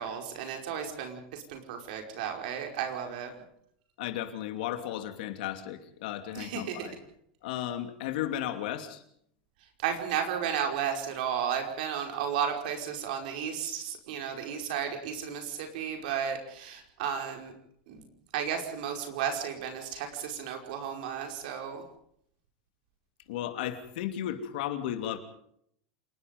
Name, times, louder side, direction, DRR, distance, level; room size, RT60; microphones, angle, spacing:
voice 1, 0.0-3.3 6.4-6.9 9.8-17.5 17.9-18.0 18.3-21.8, right 8 dB, 70° right, 4 dB, 5.2 m, -33 dB
voice 2, 4.0-7.0 7.4-9.0 23.3-25.2, left 11 dB, 75° left, 7 dB, 2.8 m, -34 dB
28.0 x 20.5 x 5.4 m, 0.68 s
supercardioid pair, 140°, 5 cm